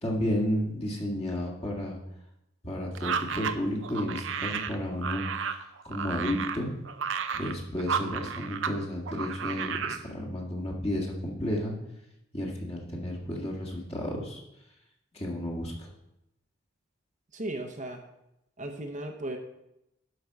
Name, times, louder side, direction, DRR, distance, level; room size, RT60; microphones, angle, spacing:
voice 1, 0.0-2.0 2.6-6.7 7.3-11.7 12.3-14.4 15.1-15.9, left 1 dB, 30° left, -2 dB, 1.8 m, -32 dB
sound 1, 3.0-8.8 9.1-10.0, right 6 dB, 65° right, 0.6 m, -33 dB
voice 2, 17.3-18.0 18.6-19.4, right 1 dB, 40° right, 4 dB, 0.9 m, -36 dB
12.0 x 5.4 x 4.7 m, 0.86 s
head